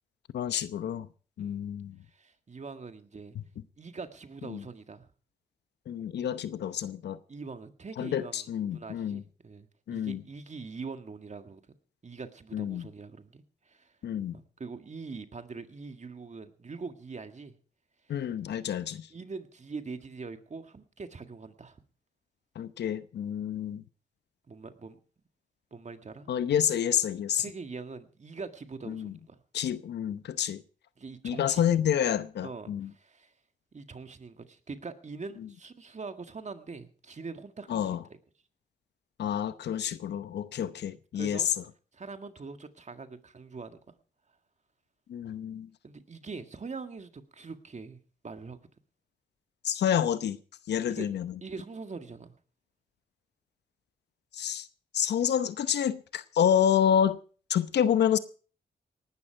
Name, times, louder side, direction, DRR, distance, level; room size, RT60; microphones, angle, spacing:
voice 1, 0.3-1.1 1.4-2.0 4.5-4.6 5.9-7.2 8.0-9.2 9.9-10.2 12.5-12.9 14.0-14.4 18.1-19.1 22.6-23.8 26.3-27.4 28.9-29.1 29.5-30.6 31.2-32.9 37.7-38.0 39.2-41.4 45.1-45.7 49.6-50.4 50.7-51.3 54.3-54.7 54.9-57.2 57.5-58.2, left 9 dB, 80° left, 0.8 m, -28 dB
voice 2, 2.1-3.4 3.8-5.1 7.3-11.6 12.0-13.9 14.3-17.6 18.1-18.3 19.1-21.8 24.5-25.0 25.7-26.3 27.4-29.4 31.0-31.6 32.4-33.3 33.7-38.2 40.6-41.5 41.9-43.9 45.8-48.0 48.2-48.6 50.9-51.1 51.4-52.3, right 4 dB, 45° right, 1.8 m, -43 dB
19.0 x 12.0 x 4.6 m
cardioid pair, 60°, 17 cm